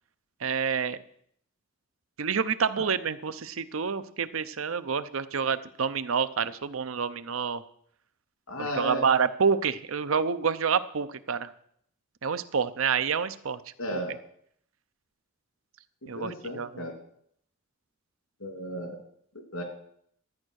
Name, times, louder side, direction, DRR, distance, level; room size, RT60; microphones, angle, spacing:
voice 1, 0.4-1.0 2.2-7.6 8.6-11.5 12.2-13.6 13.9-14.0 16.1-16.8, right 6 dB, 80° right, 13 dB, 0.7 m, -28 dB
voice 2, 8.5-9.0 13.8-14.1 16.1-17.0 18.4-19.0 19.3-19.6, equal, 85° left, 4 dB, 2.8 m, -34 dB
13.0 x 9.8 x 6.4 m, 0.67 s
head